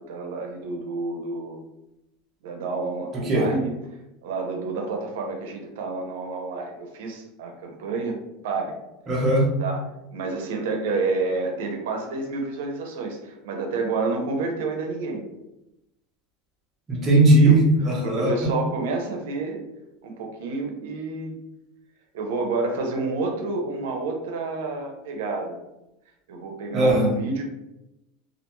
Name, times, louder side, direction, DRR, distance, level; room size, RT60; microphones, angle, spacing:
voice 1, 0.1-1.6 2.4-3.7 4.2-8.8 9.6-9.8 10.1-15.2 17.4-17.6 18.0-19.6 20.0-21.4 22.1-25.6 26.3-27.4, right 3 dB, 85° right, 2 dB, 0.5 m, -29 dB
voice 2, 3.1-3.5 9.1-9.5 16.9-18.5 26.7-27.1, right 2 dB, 20° right, -3 dB, 0.6 m, -18 dB
2.4 x 2.2 x 2.9 m, 0.91 s
supercardioid pair, 165°, 0 cm